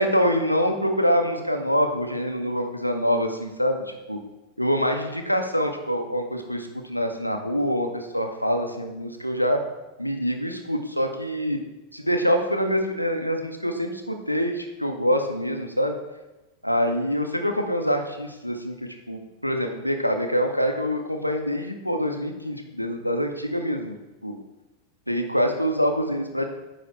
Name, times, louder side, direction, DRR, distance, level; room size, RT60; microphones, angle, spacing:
voice 1, 0.0-4.2 4.6-9.6 10.0-11.6 11.9-16.0 16.6-24.0 24.2-24.4 25.1-26.5, equal, 90° left, 4 dB, 0.7 m, -25 dB
9.6 x 3.3 x 4.2 m, 1.1 s
figure-of-eight pair, 90°, 0 cm